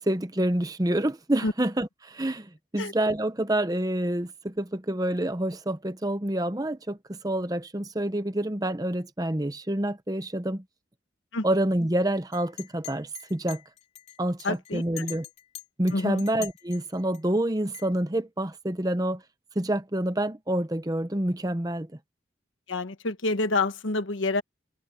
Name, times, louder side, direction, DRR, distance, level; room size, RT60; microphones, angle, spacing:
voice 1, 0.0-10.6 11.4-13.6 14.2-15.3 15.8-19.2 19.6-21.9, right 1 dB, 20° right, 0.8 m, -27 dB
Chink clink, 12.3-17.2 17.7-17.9, left 15 dB, 35° left, 4.2 m, -43 dB
voice 2, 14.4-15.1 15.9-16.2 22.7-24.4, left 2 dB, 85° left, 1.3 m, -28 dB
head